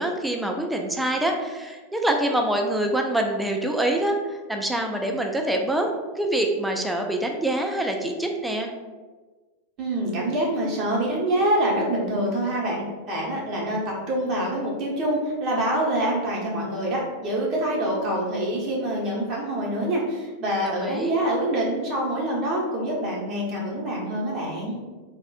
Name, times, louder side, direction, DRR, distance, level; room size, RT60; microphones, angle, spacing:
voice 1, 0.0-5.9 6.2-8.7 20.6-21.2, right 1 dB, 5° right, 2 dB, 0.3 m, -25 dB
voice 2, 9.8-24.8, right 1 dB, 35° right, -3 dB, 0.9 m, -26 dB
3.5 x 2.4 x 2.3 m, 1.3 s
figure-of-eight pair, 90°, 0 cm